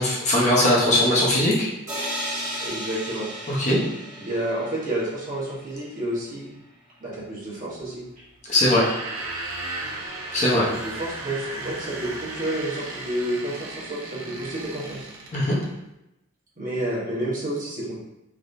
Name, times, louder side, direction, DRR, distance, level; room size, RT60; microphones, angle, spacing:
voice 1, 0.0-1.7 3.5-3.8 8.5-8.9 10.3-10.7 15.3-15.6, left 1 dB, 35° left, -6 dB, 0.8 m, -20 dB
sound 1, 1.9-5.7, equal, 15° right, 1.1 m, -34 dB
voice 2, 2.6-3.3 4.2-6.5 7.0-8.3 10.5-15.0 16.6-18.0, right 1 dB, 40° right, -8 dB, 1.2 m, -30 dB
sound 2, 8.5-15.7, right 2 dB, 65° right, 0.6 m, -35 dB
3.5 x 3.0 x 2.5 m, 0.91 s
head